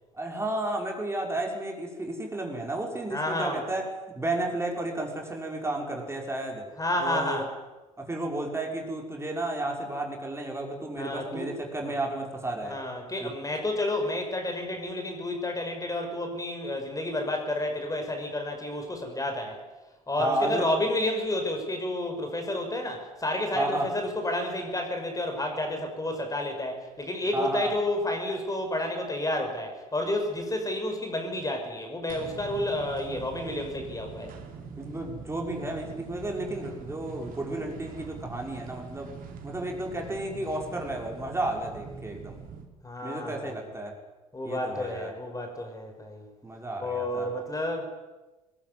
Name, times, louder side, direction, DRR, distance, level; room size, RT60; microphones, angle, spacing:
voice 1, 0.1-3.9 4.1-6.7 7.0-7.5 8.0-12.8 13.2-13.3 20.2-20.8 23.5-23.9 27.3-27.7 34.8-39.1 39.4-42.4 43.0-43.9 44.4-45.1 46.4-47.3, right 2 dB, 15° right, 1 dB, 5.8 m, -32 dB
voice 2, 3.1-3.7 6.8-7.5 11.0-11.5 11.8-12.0 12.7-19.6 20.1-34.3 42.8-43.5 44.3-46.3 46.8-47.8, left 1 dB, 20° left, 4 dB, 5.9 m, -30 dB
sound 1, 32.1-42.7, right 5 dB, 50° right, 4.0 m, -43 dB
21.5 x 20.5 x 9.6 m, 1.1 s
figure-of-eight pair, 55°, 18 cm